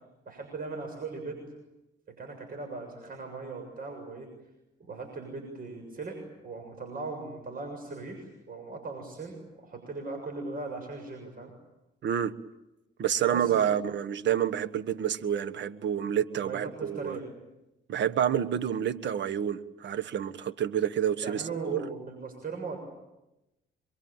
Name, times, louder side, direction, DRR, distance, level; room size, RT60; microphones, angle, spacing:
voice 1, 0.3-1.4 2.1-4.3 4.8-11.5 13.3-13.7 16.3-17.2 21.2-22.8, right 3 dB, 45° right, 7.1 m, -39 dB
voice 2, 12.0-12.4 13.0-17.2 17.9-21.8, right 9 dB, 65° right, 1.5 m, -28 dB
27.0 x 23.0 x 9.0 m
cardioid pair, 90°, 20 cm